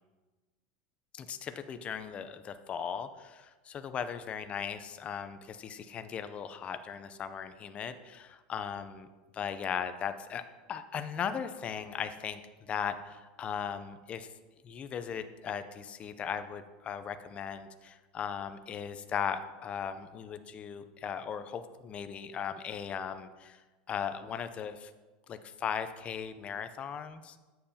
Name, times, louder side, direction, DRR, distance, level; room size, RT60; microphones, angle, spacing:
voice 1, 1.1-9.1 9.3-10.4 10.7-12.4 12.7-14.3 14.6-24.9 25.3-27.4, left 7 dB, 25° left, 10 dB, 0.4 m, -38 dB
8.6 x 7.6 x 2.8 m, 1.2 s
supercardioid pair, 140°, 4 cm